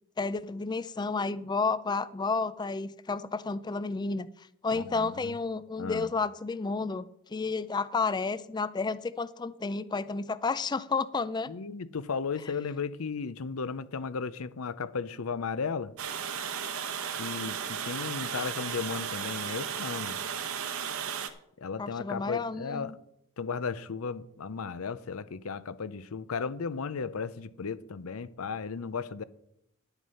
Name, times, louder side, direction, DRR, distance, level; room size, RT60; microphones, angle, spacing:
voice 1, 0.2-4.3 4.6-11.5 21.8-22.9, left 4 dB, 20° left, 0.3 m, -31 dB
voice 2, 4.7-5.4 5.8-6.1 11.5-15.9 17.2-20.2 21.6-22.9 23.4-29.2, left 5 dB, 70° left, 0.6 m, -35 dB
Water, 16.0-21.3, right 7 dB, 70° right, 1.0 m, -35 dB
11.0 x 8.1 x 5.6 m
head